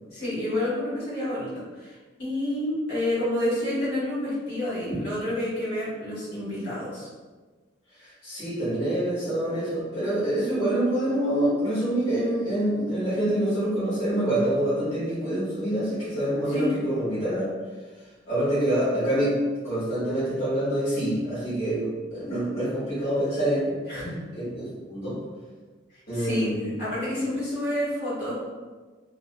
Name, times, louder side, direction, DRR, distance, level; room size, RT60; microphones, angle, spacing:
voice 1, 0.1-7.1 16.5-16.7 23.9-24.2 26.1-28.3, left 1 dB, 65° left, -10 dB, 1.3 m, -29 dB
voice 2, 8.0-17.5 18.3-19.3 19.6-23.8 24.3-25.2 26.1-26.7, right 1 dB, 35° left, -11 dB, 1.1 m, -26 dB
2.6 x 2.5 x 2.2 m, 1.3 s
head